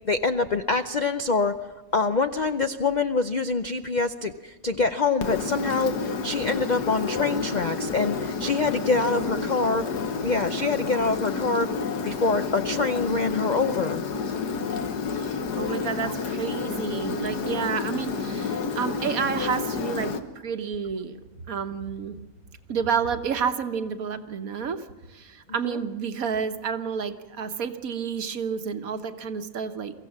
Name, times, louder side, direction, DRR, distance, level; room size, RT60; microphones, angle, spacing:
voice 1, 0.1-1.6 1.9-9.9 10.2-14.0 16.0-16.1 25.6-25.8, left 3 dB, 55° left, 9 dB, 0.4 m, -25 dB
Engine, 5.2-20.2, left 5 dB, 80° left, 1.8 m, -30 dB
voice 2, 9.1-9.5 15.2-20.1 20.4-21.2 21.5-22.2 22.7-24.8 25.1-29.9, right 6 dB, 60° right, 9 dB, 1.5 m, -30 dB
23.5 x 15.5 x 7.3 m, 1.2 s
omnidirectional pair, 1.7 m